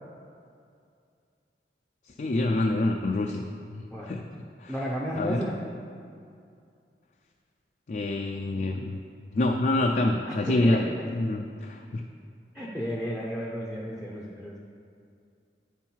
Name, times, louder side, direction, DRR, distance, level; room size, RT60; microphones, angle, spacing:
voice 1, 2.1-3.4 3.7-4.2 4.6-4.7 5.1-5.4 7.9-9.0 9.3-10.8 11.1-12.1, left 2 dB, 45° left, 2 dB, 0.4 m, -26 dB
voice 2, 4.7-5.6 10.3-11.0 12.5-14.6, equal, ahead, -3 dB, 0.6 m, -33 dB
8.8 x 5.6 x 4.5 m, 2.4 s
head